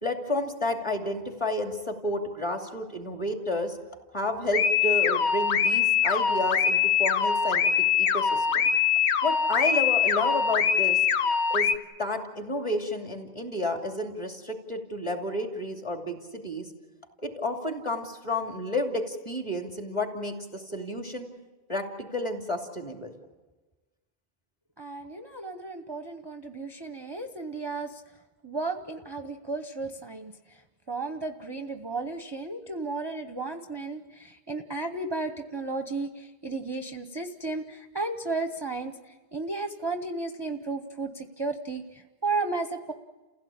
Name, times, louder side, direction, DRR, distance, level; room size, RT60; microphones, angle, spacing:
voice 1, 0.0-3.8 4.1-8.6 9.2-11.1 11.5-16.7 17.2-21.3 21.7-23.1, left 1 dB, 25° left, 3 dB, 2.8 m, -31 dB
sound 1, 4.5-11.8, left 7 dB, 80° left, 1.2 m, -23 dB
voice 2, 24.8-28.0 28.4-30.3 30.9-38.9 39.3-42.9, right 3 dB, 25° right, 6 dB, 0.9 m, -34 dB
29.5 x 16.0 x 8.7 m, 1.2 s
omnidirectional pair, 1.1 m